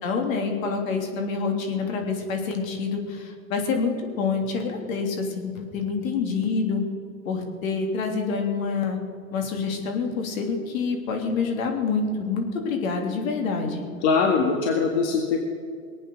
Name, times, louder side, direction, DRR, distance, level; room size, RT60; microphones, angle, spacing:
voice 1, 0.0-6.8 7.2-9.0 9.3-13.8, left 4 dB, 70° left, 3 dB, 3.2 m, -27 dB
voice 2, 14.0-15.4, left 5 dB, 55° left, 2 dB, 2.0 m, -22 dB
20.0 x 8.9 x 6.6 m, 2.3 s
hypercardioid pair, 125°, 42 cm